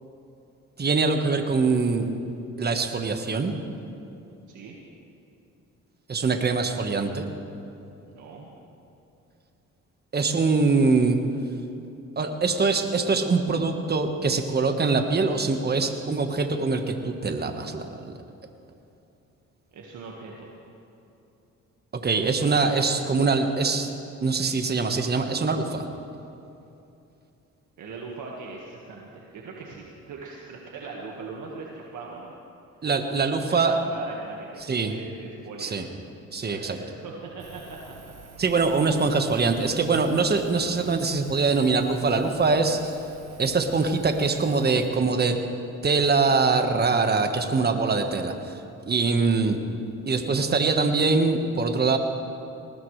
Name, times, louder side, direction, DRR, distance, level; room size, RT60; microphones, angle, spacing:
voice 1, 0.8-2.1 2.6-3.5 6.1-7.3 10.1-11.2 12.2-18.1 22.0-23.9 24.2-25.9 32.8-33.8 34.7-34.9 35.6-35.8 36.3-36.8 38.4-43.0 43.4-45.4 45.8-48.6 48.9-49.6 50.1-52.0, right 4 dB, 35° right, 6 dB, 1.4 m, -23 dB
voice 2, 8.0-8.5 19.7-20.5 27.8-32.3 33.3-35.9 36.4-38.1, right 4 dB, 75° right, -2 dB, 1.7 m, -40 dB
Engine, 37.4-44.9, right 3 dB, 55° right, 1.5 m, -49 dB
20.5 x 19.0 x 3.3 m, 2.8 s
cardioid pair, 90°, 30 cm